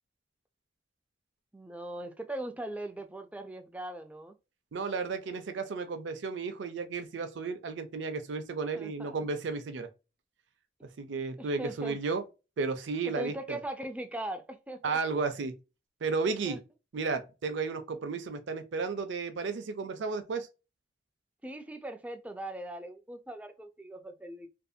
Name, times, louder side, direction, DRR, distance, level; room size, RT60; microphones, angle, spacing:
voice 1, 1.5-4.4 8.7-9.3 11.4-12.0 13.0-15.0 16.4-16.6 21.4-24.5, right 1 dB, 10° right, 0.3 m, -40 dB
voice 2, 4.7-9.9 10.8-12.2 12.6-13.6 14.8-15.5 16.0-16.6 16.9-20.5, right 4 dB, 80° right, 0.5 m, -33 dB
2.6 x 2.5 x 2.2 m
head